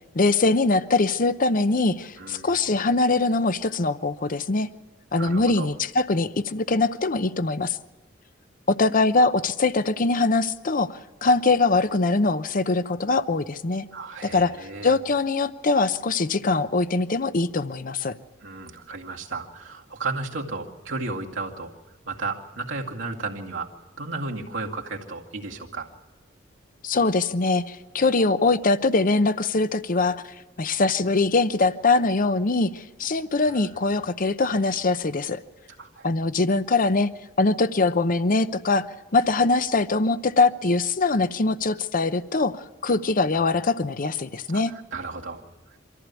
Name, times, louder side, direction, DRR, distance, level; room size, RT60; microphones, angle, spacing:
voice 1, 0.1-4.7 5.1-7.8 8.7-13.9 14.3-14.6 14.8-18.1 26.8-30.2 30.6-35.4 36.0-37.1 37.4-38.9 39.1-44.7, left 3 dB, 45° left, 13 dB, 0.7 m, -22 dB
voice 2, 2.2-2.7 5.2-5.7 13.9-14.9 18.4-21.7 22.1-25.9 33.4-33.8 35.8-36.1 43.3-43.5 44.5-45.4, right 3 dB, 80° right, 0 dB, 2.3 m, -34 dB
25.0 x 14.5 x 8.3 m, 1.2 s
head